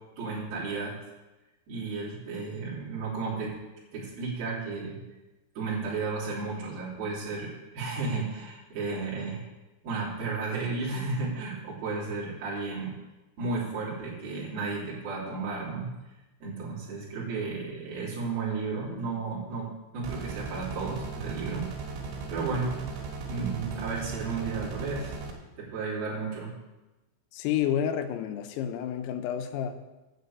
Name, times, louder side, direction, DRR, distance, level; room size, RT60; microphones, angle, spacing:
voice 1, 0.2-0.9 1.7-3.6 3.9-5.0 5.6-9.4 9.8-12.9 13.4-15.9 16.4-19.7 19.9-21.7 22.3-22.8 23.3-25.2 25.6-26.5, right 4 dB, 50° right, -7 dB, 4.6 m, -33 dB
sound 1, 20.0-25.3, right 4 dB, 80° right, 4.4 m, -37 dB
voice 2, 27.3-29.8, left 9 dB, 85° left, 8 dB, 3.4 m, -30 dB
9.3 x 6.7 x 8.1 m, 1.1 s
omnidirectional pair, 5.9 m